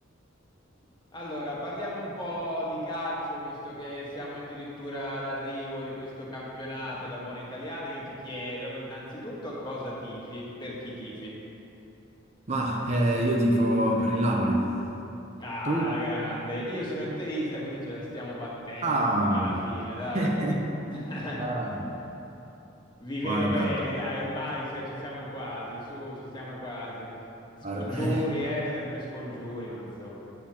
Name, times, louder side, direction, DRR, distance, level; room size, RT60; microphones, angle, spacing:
voice 1, 1.1-11.3 15.4-20.3 20.9-21.4 21.7-21.9 23.0-27.2 27.7-30.1, equal, 25° left, -6 dB, 1.5 m, -34 dB
voice 2, 12.5-14.7 15.7-16.0 18.8-19.6 20.1-20.7 21.4-21.8 23.2-23.8 27.6-28.2, right 1 dB, 35° right, -1 dB, 0.6 m, -26 dB
8.2 x 8.2 x 2.9 m, 3.0 s
head